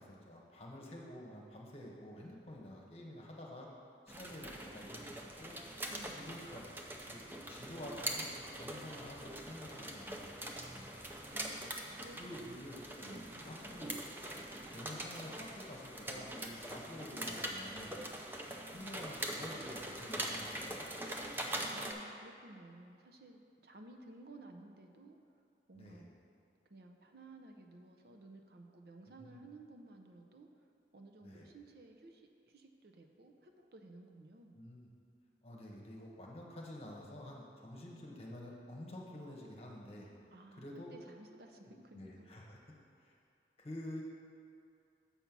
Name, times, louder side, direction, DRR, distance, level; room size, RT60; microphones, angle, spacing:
voice 1, 0.0-3.7 4.1-5.6 6.2-6.7 7.0-7.2 7.5-8.2 8.6-10.9 12.1-14.0 14.7-17.9 18.7-21.2 25.7-26.0 29.1-29.4 31.2-31.4 34.5-34.9 35.4-40.1 40.6-40.9 41.9-42.6 43.0-43.1 43.6-44.0, left 1 dB, 35° left, -2 dB, 1.1 m, -49 dB
sound 1, 4.1-21.9, right 1 dB, 10° right, 0.5 m, -43 dB
voice 2, 5.9-6.3 11.3-12.6 13.0-14.0 21.7-25.2 25.7-26.1 26.7-30.7 30.9-34.6 37.7-38.4 40.3-42.3, right 2 dB, 60° right, 4 dB, 0.6 m, -56 dB
sound 2, 9.4-10.4 12.1-12.2 13.0-15.1 16.2-17.1 18.0-18.2 18.7-19.2, left 1 dB, 65° left, 0.7 m, -60 dB
7.2 x 5.5 x 5.9 m, 2.4 s
head